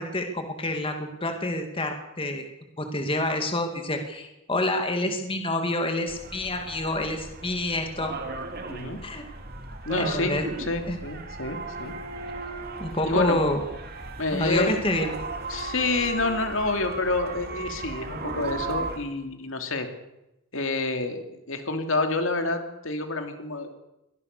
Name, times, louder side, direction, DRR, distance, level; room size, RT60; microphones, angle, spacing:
voice 1, 0.0-2.4 2.8-8.1 9.0-9.3 10.0-10.5 10.9-11.0 12.8-13.6 14.3-15.1, left 1 dB, 25° left, 5 dB, 2.3 m, -28 dB
sound 1, 6.1-19.0, right 3 dB, 45° right, 2.6 m, -36 dB
voice 2, 8.7-9.0 9.9-10.3 10.7-11.9 13.0-13.4 14.2-14.8 15.5-19.9 20.5-23.7, left 2 dB, 65° left, 6 dB, 2.8 m, -28 dB
23.5 x 18.5 x 6.8 m, 0.91 s
head